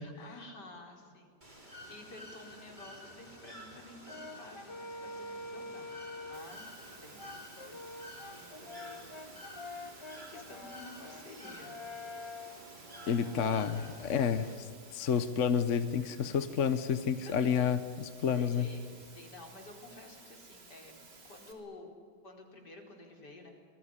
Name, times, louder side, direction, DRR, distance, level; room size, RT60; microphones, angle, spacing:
voice 1, 0.0-9.6 10.1-11.9 12.7-13.6 17.2-17.7 18.2-21.0 21.3-21.9 22.2-23.5, left 2 dB, 75° left, 1 dB, 5.1 m, -52 dB
Bird / Water, 1.4-14.6, equal, 25° right, 5.0 m, -51 dB
Brass instrument, 4.1-6.6 7.2-14.1, left 2 dB, 25° left, 0.8 m, -46 dB
Water, 6.3-21.5, right 3 dB, 85° right, 3.9 m, -56 dB
voice 2, 13.1-18.7, left 7 dB, 50° left, 12 dB, 1.2 m, -30 dB
26.0 x 20.5 x 10.0 m, 2.1 s
omnidirectional pair, 1.8 m